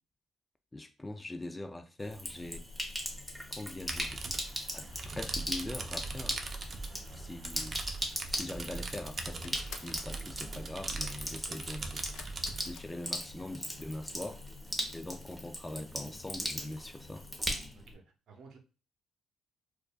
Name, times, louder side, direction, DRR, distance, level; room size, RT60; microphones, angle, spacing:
voice 1, 0.7-2.6 3.5-4.3 4.7-6.4 7.1-7.8 8.3-12.0 12.6-14.4 14.9-17.3, left 1 dB, 15° left, 0.4 m, -42 dB
Sink (filling or washing), 2.0-17.9, equal, ahead, 1.0 m, -39 dB
sound 1, 3.9-12.8, right 3 dB, 40° right, 0.6 m, -41 dB
voice 2, 6.9-7.3 11.2-11.6 17.7-18.6, right 4 dB, 75° right, 0.8 m, -56 dB
sound 2, 9.4-10.1 12.1-13.6 13.9-14.5 14.8-14.9 15.3-15.4, left 7 dB, 85° left, 0.4 m, -50 dB
4.8 x 2.4 x 2.3 m
cardioid pair, 90°, 0 cm